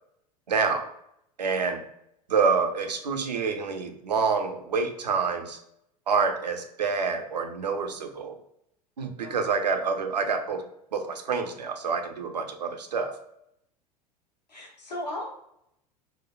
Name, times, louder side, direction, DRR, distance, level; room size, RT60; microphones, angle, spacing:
voice 1, 0.5-0.8 1.4-1.8 2.3-5.6 6.1-8.4 9.0-10.6 10.9-13.1, right 5 dB, 80° right, 6 dB, 0.5 m, -27 dB
voice 2, 14.5-15.2, left 1 dB, 85° left, -2 dB, 1.0 m, -36 dB
3.3 x 2.1 x 2.3 m, 0.76 s
figure-of-eight pair, 80°, 21 cm